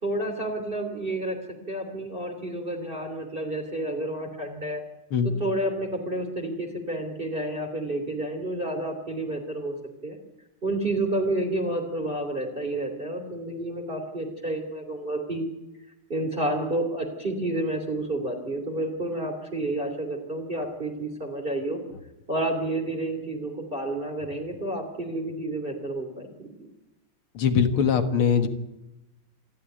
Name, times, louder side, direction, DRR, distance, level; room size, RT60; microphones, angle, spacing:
voice 1, 0.0-1.4 1.7-4.8 5.2-9.7 10.0-10.2 10.6-15.5 16.1-21.8 22.3-26.5, right 1 dB, 25° right, 2 dB, 3.1 m, -30 dB
voice 2, 27.3-28.5, left 7 dB, 80° left, 7 dB, 2.4 m, -22 dB
27.0 x 12.5 x 9.2 m, 0.96 s
omnidirectional pair, 2.3 m